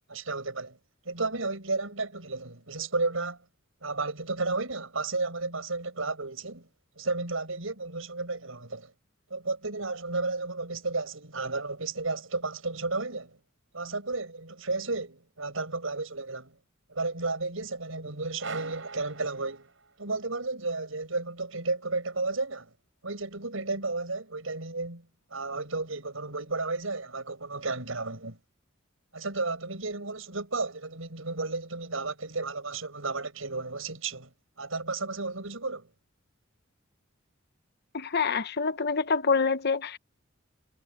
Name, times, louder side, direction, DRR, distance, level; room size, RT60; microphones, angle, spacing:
voice 1, 0.1-0.8 1.0-3.4 3.8-6.7 7.0-8.9 9.3-13.4 13.7-16.6 16.9-19.7 20.0-22.7 23.0-25.1 25.3-28.4 29.1-34.3 34.6-35.9, right 3 dB, 85° right, 6.0 m, -33 dB
sound 1, 18.4-20.2, right 4 dB, 70° right, 7.4 m, -41 dB
voice 2, 37.9-40.0, left 5 dB, 55° left, 1.0 m, -26 dB
head